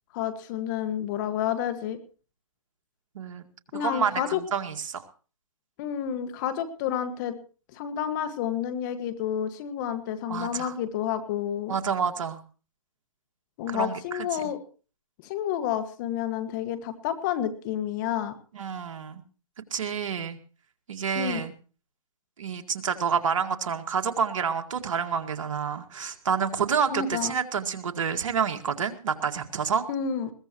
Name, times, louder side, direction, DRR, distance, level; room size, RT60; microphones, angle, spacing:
voice 1, 0.1-2.0 3.7-4.4 5.8-7.4 7.7-11.8 13.6-14.6 15.2-18.3 21.2-21.4 26.9-27.3 29.9-30.3, left 9 dB, 35° left, 10 dB, 1.8 m, -30 dB
voice 2, 3.7-5.1 10.3-10.8 11.7-12.4 13.7-14.4 18.5-19.2 19.7-20.4 20.9-21.5 22.4-29.8, right 6 dB, 65° right, 6 dB, 2.0 m, -28 dB
21.5 x 16.5 x 3.1 m, 0.38 s
hypercardioid pair, 150°, 18 cm